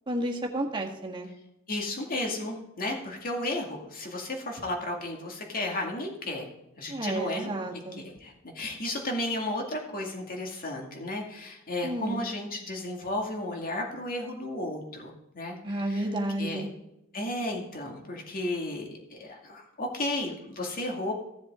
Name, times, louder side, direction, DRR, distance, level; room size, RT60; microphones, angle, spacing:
voice 1, 0.1-1.3 6.9-8.0 11.8-12.2 15.6-16.7, right 1 dB, 25° right, 0 dB, 1.7 m, -31 dB
voice 2, 1.7-6.5 6.8-7.5 7.9-16.1 16.4-16.7 17.1-21.1, left 1 dB, 45° left, 1 dB, 2.2 m, -33 dB
15.5 x 7.4 x 3.7 m, 0.85 s
head